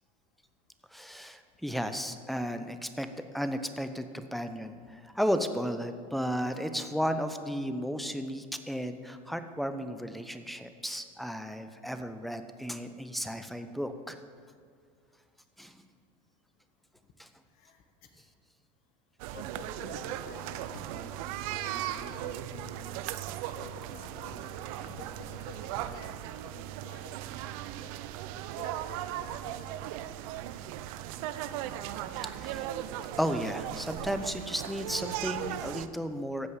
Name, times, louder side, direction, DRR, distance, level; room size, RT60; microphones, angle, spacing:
voice 1, 0.9-3.1 3.3-14.2 15.6-15.8 17.2-17.3 31.8-31.9 32.2-32.7 33.2-36.5, equal, ahead, 9 dB, 0.8 m, -34 dB
sound 1, 19.2-35.9, right 12 dB, 65° right, 0.6 m, -38 dB
voice 2, 19.3-23.0 23.6-27.1 27.4-30.7, left 6 dB, 50° left, 6 dB, 1.3 m, -51 dB
sound 2, 20.7-26.1, left 5 dB, 90° left, 1.2 m, -54 dB
15.0 x 5.4 x 8.2 m, 2.1 s
hypercardioid pair, 95°, 19 cm